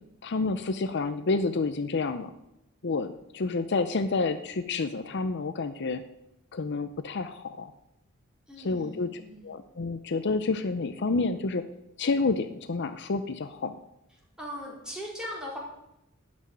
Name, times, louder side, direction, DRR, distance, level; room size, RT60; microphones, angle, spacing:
voice 1, 0.2-2.3 2.8-6.0 6.5-7.7 8.6-9.1 9.4-11.6 12.0-13.7, left 3 dB, 55° left, 10 dB, 0.6 m, -29 dB
voice 2, 8.5-9.5 14.4-15.6, equal, 5° right, -4 dB, 4.3 m, -39 dB
13.0 x 6.2 x 9.6 m, 0.87 s
head